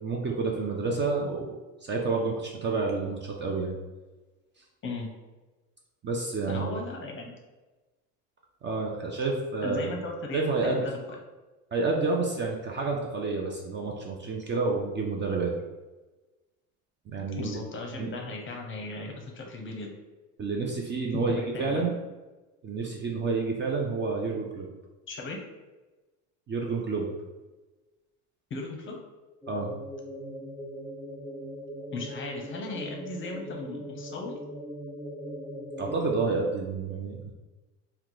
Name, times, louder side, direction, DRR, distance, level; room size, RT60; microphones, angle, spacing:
voice 1, 0.0-1.5 1.8-3.8 6.0-6.7 8.6-9.9 10.3-10.9 11.7-15.5 17.1-17.6 18.0-18.1 20.4-22.0 22.6-24.7 26.5-27.1 29.5-29.7 35.8-37.3, right 3 dB, 30° right, 0 dB, 0.4 m, -29 dB
voice 2, 6.5-7.4 9.6-11.2 17.3-19.9 21.1-21.8 25.1-25.4 28.5-29.0 31.9-34.3, left 3 dB, 30° left, 1 dB, 0.7 m, -36 dB
sound 1, 29.4-36.2, equal, 5° right, 0.8 m, -40 dB
2.9 x 2.2 x 3.7 m, 1.2 s
supercardioid pair, 100°, 39 cm